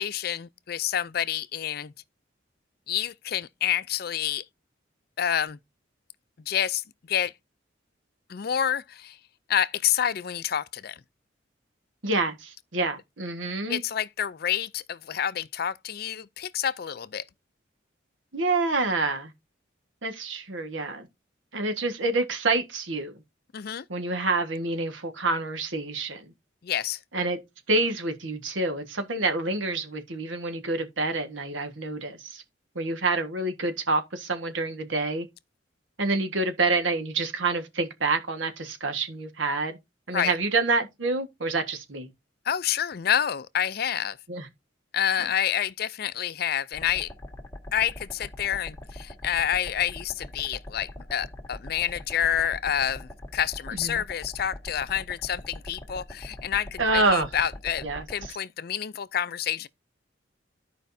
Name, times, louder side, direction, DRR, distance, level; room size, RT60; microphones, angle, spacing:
voice 1, 0.0-1.9 2.9-4.4 5.2-5.6 6.5-6.8 7.1-7.3 8.3-9.2 9.5-11.0 13.7-17.2 23.5-23.8 26.6-27.0 40.1-40.3 42.5-44.2 44.9-47.1 47.7-59.7, left 9 dB, 50° left, 0.4 m, -28 dB
voice 2, 12.0-13.8 18.3-19.3 20.0-21.1 21.5-23.1 23.9-26.2 27.1-27.4 27.7-32.4 32.7-35.3 36.0-39.8 40.1-42.1 44.3-44.5 53.7-54.0 56.8-57.3 57.8-58.3, right 3 dB, 80° right, 1.6 m, -27 dB
sound 1, 46.7-58.3, left 1 dB, 15° left, 1.7 m, -42 dB
14.0 x 5.1 x 2.7 m
head